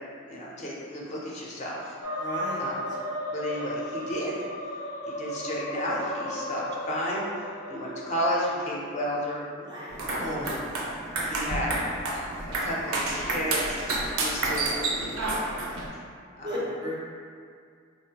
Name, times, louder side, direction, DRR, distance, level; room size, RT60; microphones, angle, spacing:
voice 1, 0.2-1.9 2.6-2.8 3.3-4.4 5.1-7.3 7.7-9.5 10.0-10.4 11.2-11.8 12.6-13.8 14.2-16.0 16.4-16.6, equal, 35° left, -5 dB, 0.4 m, -32 dB
sound 1, 2.0-8.3, equal, 90° left, 0.5 m, -34 dB
voice 2, 2.2-2.7 9.6-10.6 16.4-17.0, equal, 20° right, -5 dB, 0.4 m, -34 dB
sound 2, 9.9-15.9, right 2 dB, 85° right, 0.4 m, -30 dB
3.5 x 2.1 x 2.8 m, 2.2 s
head